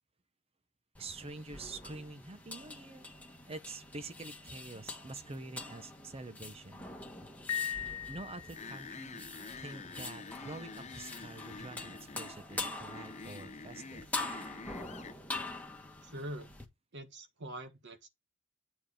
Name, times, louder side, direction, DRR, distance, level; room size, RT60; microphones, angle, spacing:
sound 1, 0.9-16.6, left 2 dB, 5° left, 1.3 m, -44 dB
voice 1, 1.0-3.1 3.5-6.9 8.1-9.2 9.6-14.1, right 2 dB, 25° right, 0.7 m, -46 dB
Piano, 7.5-8.9, left 9 dB, 70° left, 0.4 m, -38 dB
sound 2, 8.6-15.2, left 4 dB, 30° left, 0.6 m, -47 dB
voice 2, 16.0-16.5 16.9-18.1, right 1 dB, 50° right, 1.4 m, -44 dB
9.0 x 4.6 x 4.8 m
head